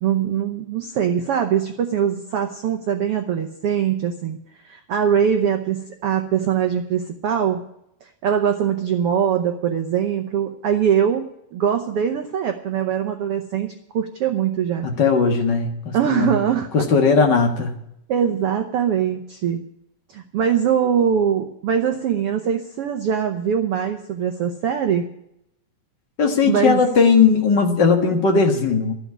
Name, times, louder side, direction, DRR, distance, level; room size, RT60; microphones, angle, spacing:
voice 1, 0.0-4.4 4.6-7.6 8.0-14.9 15.9-16.9 18.1-19.6 20.1-25.0 26.4-26.8, right 8 dB, 85° right, 5 dB, 1.2 m, -22 dB
voice 2, 14.8-16.4 16.7-17.7 26.2-28.9, left 5 dB, 45° left, 3 dB, 1.6 m, -18 dB
12.5 x 7.8 x 9.4 m, 0.78 s
omnidirectional pair, 4.0 m